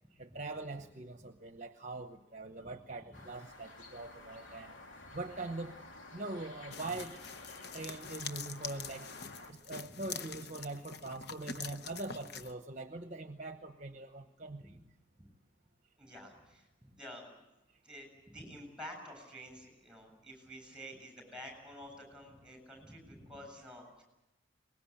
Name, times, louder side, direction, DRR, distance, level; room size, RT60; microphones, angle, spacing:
voice 1, 0.2-4.7 5.1-5.8 6.1-7.2 7.7-9.1 9.5-14.8, right 2 dB, 40° right, 7 dB, 1.0 m, -43 dB
sound 1, 3.1-9.5, left 2 dB, 75° left, 3.1 m, -52 dB
sound 2, 6.7-12.5, left 6 dB, 55° left, 1.0 m, -45 dB
voice 2, 16.0-17.3 17.8-24.0, equal, 5° right, 6 dB, 7.6 m, -50 dB
23.5 x 21.0 x 8.7 m, 0.93 s
head